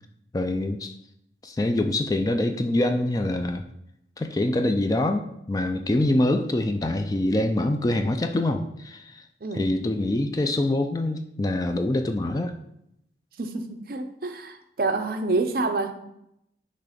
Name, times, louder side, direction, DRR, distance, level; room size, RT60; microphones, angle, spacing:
voice 1, 0.3-0.9 1.4-3.6 4.2-9.3 9.5-12.5, left 1 dB, 20° left, 7 dB, 0.3 m, -25 dB
voice 2, 13.4-15.9, right 3 dB, 55° right, 7 dB, 0.6 m, -27 dB
5.9 x 3.2 x 5.0 m, 0.78 s
head